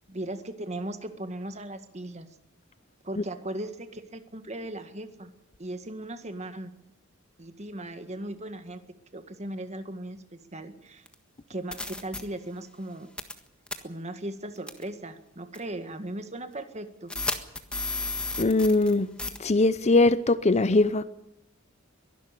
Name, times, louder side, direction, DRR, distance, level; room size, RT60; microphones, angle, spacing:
voice 1, 0.1-2.3 3.0-5.3 5.6-6.7 7.4-8.8 9.1-10.2 10.5-11.0 11.5-13.1 13.8-17.1, right 1 dB, 35° right, 1.8 m, -37 dB
sound 1, 11.1-11.2 11.7-12.2 13.2-13.4 13.7-13.8 14.7-14.8 15.5-15.6 17.1-18.9 19.2-19.4, left 2 dB, 5° left, 1.5 m, -32 dB
voice 2, 18.4-19.1 19.4-21.0, left 2 dB, 35° left, 0.6 m, -21 dB
22.5 x 12.0 x 9.9 m
head